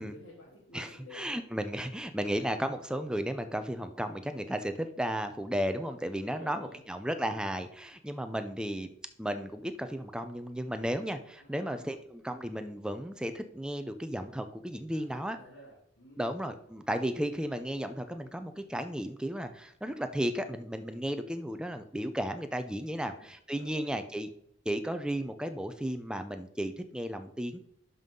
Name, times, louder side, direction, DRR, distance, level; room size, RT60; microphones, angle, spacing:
voice 1, 0.0-1.4 6.2-6.8 11.4-11.9 14.9-16.3 22.9-23.3 23.6-23.9, left 1 dB, 80° left, -7 dB, 2.8 m, -51 dB
voice 2, 0.7-8.9 9.2-15.4 16.2-24.3 24.7-27.6, equal, 5° right, 8 dB, 0.6 m, -34 dB
11.0 x 5.5 x 3.8 m, 0.72 s
head